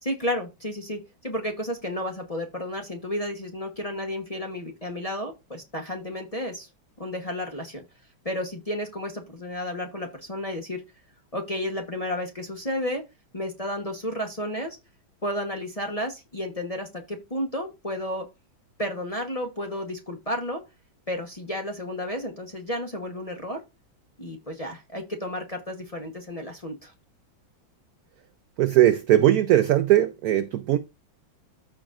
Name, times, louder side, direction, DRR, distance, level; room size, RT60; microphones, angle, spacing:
voice 1, 0.0-6.7 7.0-7.8 8.2-10.8 11.3-13.0 13.3-14.8 15.2-18.3 18.8-20.6 21.1-23.6 24.2-26.9, left 1 dB, 25° left, 0.8 m, -32 dB
voice 2, 28.6-30.8, right 12 dB, 85° right, 0.8 m, -19 dB
14.0 x 5.1 x 2.5 m
omnidirectional pair, 2.2 m